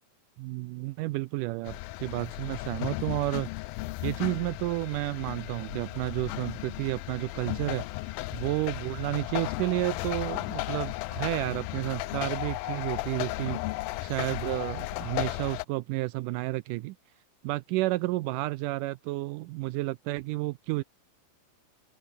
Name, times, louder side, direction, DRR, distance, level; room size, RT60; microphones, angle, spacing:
voice 1, 0.4-3.5 4.0-13.6 14.0-17.0 17.4-20.8, right 19 dB, 85° right, 1.9 m, -31 dB
sound 1, 1.6-15.6, left 20 dB, 80° left, 2.4 m, -35 dB
open air
omnidirectional pair, 4.2 m